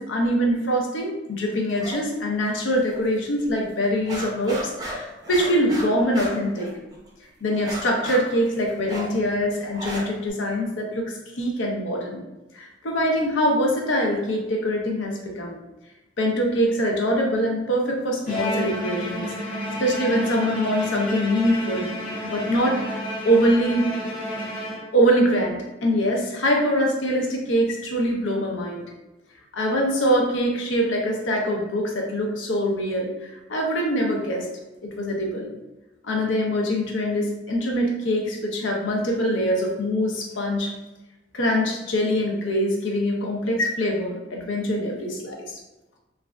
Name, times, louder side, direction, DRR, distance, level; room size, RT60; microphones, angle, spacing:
voice 1, 0.0-6.7 7.4-12.2 12.5-15.6 16.2-21.9 22.2-23.9 24.9-28.8 29.5-34.5 34.8-35.5 36.0-40.7 41.3-45.6, equal, 80° left, 0 dB, 0.6 m, -24 dB
sound 1, 1.7-2.0 2.3-3.1 3.4-3.5 3.8-7.1 7.5-10.3, right 1 dB, 20° right, 0.5 m, -35 dB
Bowed string instrument, 18.3-25.2, equal, 30° left, 0.9 m, -31 dB
3.2 x 2.4 x 2.2 m, 1.0 s
head